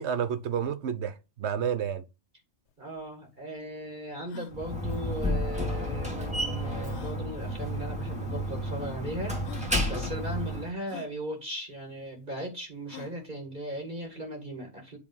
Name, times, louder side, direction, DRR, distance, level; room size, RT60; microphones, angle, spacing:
voice 1, 0.0-2.0, right 8 dB, 80° right, 1.2 m, -30 dB
sound 1, 2.7-2.8 3.0-3.1 3.6-3.7 4.2-4.5 5.9-6.0 6.9-7.2 8.2-8.3 9.0-9.1 9.4-9.7 10.9-11.1 12.9-13.2, left 8 dB, 80° left, 1.1 m, -46 dB
voice 2, 2.8-9.4 9.9-15.0, right 1 dB, 45° right, 2.2 m, -37 dB
Slam, 4.5-10.7, equal, 5° right, 1.9 m, -31 dB
8.4 x 3.5 x 5.3 m
omnidirectional pair, 1.1 m